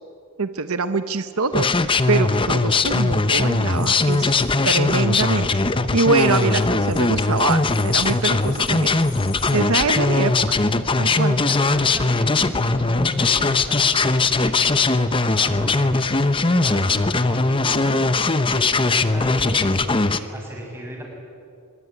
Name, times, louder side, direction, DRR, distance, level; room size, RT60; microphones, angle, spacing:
voice 1, 0.4-4.3 4.6-5.5 5.9-9.0 9.5-10.6 11.0-11.3, right 4 dB, 75° right, 10 dB, 1.0 m, -24 dB
sound 1, 1.5-20.2, left 3 dB, 25° left, 0.8 m, -20 dB
sound 2, 2.9-3.0 3.7-4.7 6.1-9.5, left 9 dB, 40° left, 3.7 m, -43 dB
voice 2, 9.4-10.0 11.0-21.0, right 1 dB, 10° right, -1 dB, 7.2 m, -35 dB
25.0 x 23.5 x 9.9 m, 2.4 s
head